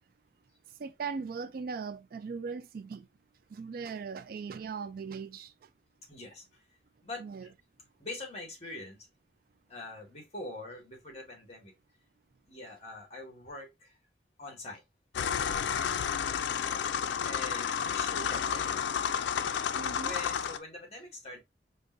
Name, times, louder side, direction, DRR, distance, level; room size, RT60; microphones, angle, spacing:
voice 1, 0.8-3.1 3.5-5.7 7.2-7.5 19.7-20.1, right 5 dB, 55° right, 0.3 m, -39 dB
voice 2, 6.1-6.6 7.0-7.5 8.0-9.1 9.7-11.7 12.5-14.0 14.4-14.8 17.2-18.9 20.0-21.4, left 2 dB, 35° left, 1.7 m, -44 dB
sound 1, 15.1-20.6, left 7 dB, 90° left, 0.4 m, -31 dB
5.2 x 2.6 x 2.4 m
head